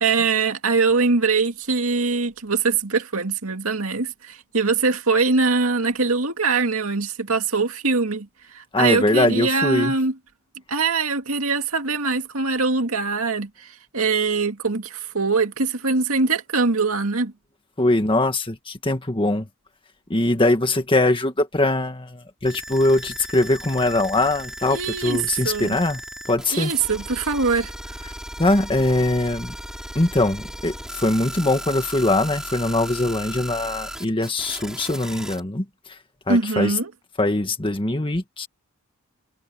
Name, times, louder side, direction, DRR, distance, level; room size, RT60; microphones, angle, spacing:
voice 1, 0.0-8.3 8.5-10.1 10.7-17.3 24.7-25.8 26.5-27.7 36.3-36.9, right 4 dB, 75° right, 2.3 m, -22 dB
voice 2, 8.7-9.9 17.8-19.5 20.1-26.0 26.3-26.7 28.4-29.5 30.0-36.0 36.3-36.7 37.2-38.5, left 2 dB, 25° left, 1.8 m, -22 dB
sound 1, 22.4-35.4, equal, 5° right, 6.6 m, -36 dB
head